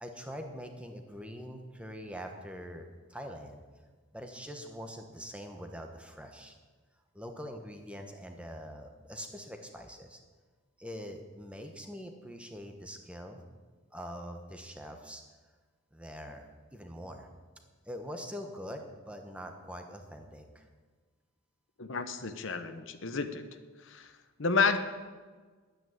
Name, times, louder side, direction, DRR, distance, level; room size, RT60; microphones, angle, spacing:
voice 1, 0.0-3.6 4.1-6.5 7.1-10.2 10.8-13.4 13.9-15.2 15.9-17.3 17.8-20.7, equal, 5° right, 4 dB, 1.2 m, -44 dB
voice 2, 21.8-23.4 23.8-24.1 24.4-24.8, left 4 dB, 60° left, 9 dB, 0.9 m, -30 dB
11.0 x 9.2 x 9.3 m, 1.4 s
head